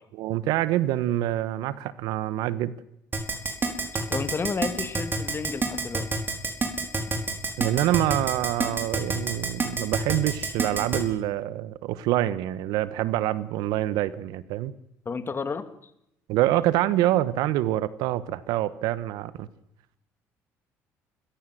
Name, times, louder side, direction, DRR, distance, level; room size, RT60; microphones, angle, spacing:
voice 1, 0.1-2.7 7.6-14.7 16.3-19.5, right 14 dB, 80° right, 17 dB, 1.1 m, -26 dB
Keyboard (musical), 3.1-11.0, right 3 dB, 30° right, 5.2 m, -27 dB
voice 2, 4.1-6.1 15.1-15.7, left 5 dB, 35° left, 11 dB, 2.4 m, -31 dB
30.0 x 15.0 x 7.8 m, 0.79 s
supercardioid pair, 75°, 7 cm